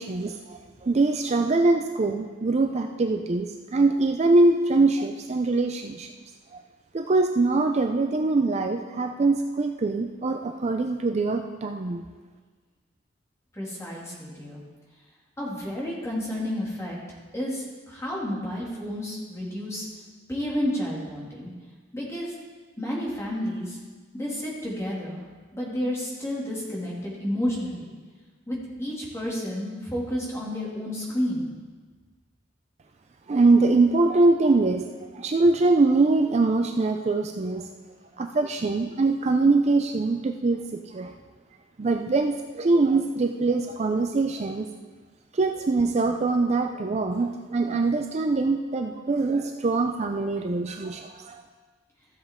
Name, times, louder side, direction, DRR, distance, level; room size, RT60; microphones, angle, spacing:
voice 1, 0.0-6.1 6.5-6.6 6.9-12.0 33.3-34.8 35.1-37.7 38.2-41.1 41.8-44.7 45.3-51.4, right 3 dB, 35° right, 5 dB, 0.4 m, -23 dB
voice 2, 13.5-14.6 15.4-17.0 17.3-19.9 20.3-21.5 21.9-22.3 22.8-23.8 24.1-25.2 25.5-27.9 28.5-31.5, left 1 dB, 15° left, -5 dB, 2.4 m, -31 dB
14.5 x 7.4 x 3.7 m, 1.4 s
head